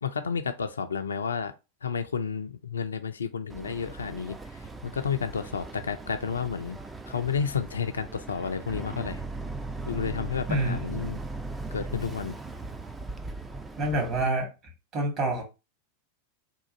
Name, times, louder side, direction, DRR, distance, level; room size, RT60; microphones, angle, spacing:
voice 1, 0.0-1.5 1.8-6.8 7.1-9.2 9.9-11.2 11.7-12.4, left 6 dB, 70° left, 0.4 m, -31 dB
Boat Water vehicle, 3.5-14.3, right 3 dB, 10° right, 0.4 m, -39 dB
voice 2, 10.5-10.9 13.8-14.5 14.9-15.4, right 2 dB, 35° right, 1.8 m, -27 dB
3.7 x 2.5 x 4.1 m
figure-of-eight pair, 90°, 0 cm